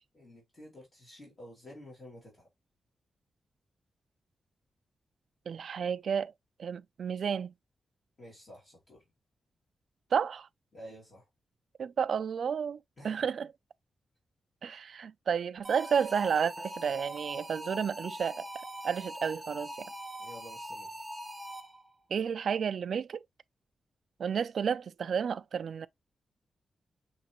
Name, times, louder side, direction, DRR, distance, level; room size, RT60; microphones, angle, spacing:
voice 1, 0.1-2.5 8.2-9.0 10.7-11.3 13.0-13.4 20.2-21.1, equal, 35° left, 2.5 m, -51 dB
voice 2, 5.5-6.3 6.6-7.5 10.1-10.5 11.8-12.8 13.0-13.5 14.6-18.5 18.8-19.7 22.1-23.2 24.2-25.9, right 7 dB, 55° right, 0.3 m, -31 dB
sound 1, 15.6-21.9, equal, 10° right, 0.8 m, -42 dB
5.8 x 3.1 x 2.9 m
wide cardioid pair, 160°, 0 cm